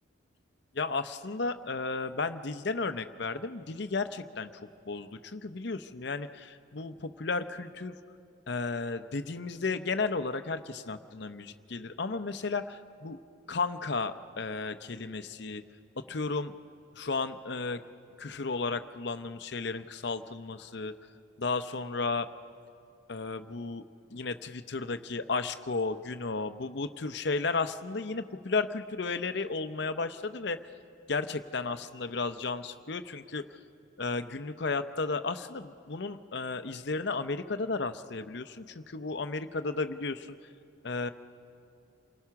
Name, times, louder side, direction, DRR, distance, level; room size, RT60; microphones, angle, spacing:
voice 1, 0.7-4.5 4.9-7.9 8.5-13.2 13.5-15.6 16.0-16.5 16.9-17.8 18.2-20.9 21.4-22.3 23.1-23.8 24.1-30.6 31.1-33.6 34.0-40.4 40.8-41.1, left 4 dB, 55° left, 10 dB, 0.7 m, -33 dB
28.0 x 19.0 x 5.9 m, 2.5 s
head